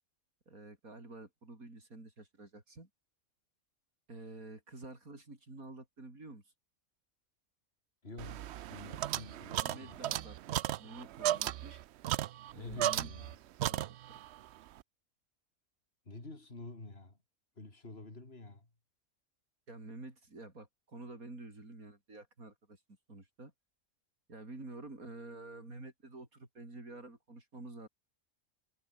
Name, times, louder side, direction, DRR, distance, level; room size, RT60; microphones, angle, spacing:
voice 1, 0.5-2.9 4.1-6.5 9.6-11.8 12.5-13.1 13.7-14.2 19.7-22.8 23.1-23.5 24.3-27.9, right 2 dB, 90° right, 5.8 m, -49 dB
voice 2, 8.0-10.0 12.5-13.4 16.1-17.2 17.6-18.7, left 2 dB, 45° left, 4.0 m, -48 dB
sound 1, 8.2-13.3 13.6-14.3, right 13 dB, 65° right, 0.7 m, -35 dB
omnidirectional pair, 1.4 m